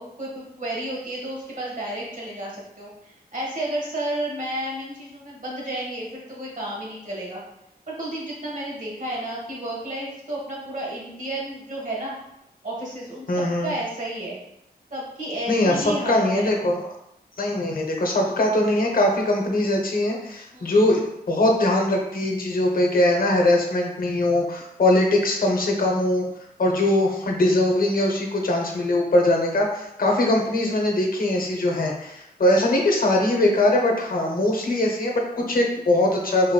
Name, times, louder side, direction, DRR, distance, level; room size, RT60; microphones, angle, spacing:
voice 1, 0.0-7.4 7.9-12.1 12.6-14.4 14.9-16.5 20.5-20.7 30.0-30.2, right 1 dB, 55° right, -4 dB, 1.4 m, -32 dB
voice 2, 13.3-13.7 15.5-16.9 17.4-21.0 21.3-26.3 26.6-36.5, left 1 dB, 60° left, 1 dB, 0.7 m, -21 dB
3.9 x 3.8 x 2.2 m, 0.82 s
wide cardioid pair, 85°, 16 cm